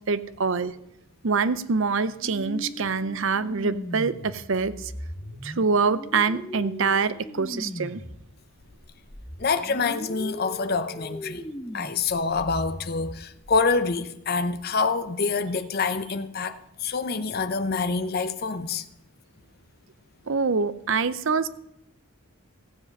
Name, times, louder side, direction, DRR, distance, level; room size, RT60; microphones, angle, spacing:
voice 1, 0.1-0.7 1.2-4.9 5.4-8.0 20.3-21.5, right 4 dB, 60° right, 0.6 m, -25 dB
sound 1, 2.2-8.3 8.6-13.6, equal, 10° left, 0.8 m, -39 dB
voice 2, 9.4-11.4 11.7-18.8, left 4 dB, 45° left, 0.7 m, -26 dB
15.5 x 7.4 x 5.4 m
head